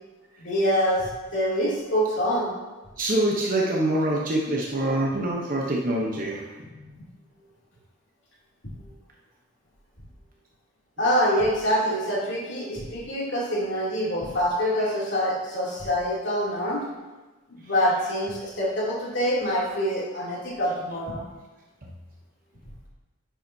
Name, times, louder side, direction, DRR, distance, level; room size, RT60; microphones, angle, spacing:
voice 1, 0.4-2.5 6.7-7.0 11.0-16.8 17.5-21.2, equal, 60° left, -6 dB, 2.9 m, -25 dB
voice 2, 3.0-6.4, right 1 dB, 40° right, -2 dB, 0.9 m, -25 dB
10.5 x 7.4 x 2.8 m, 1.2 s
head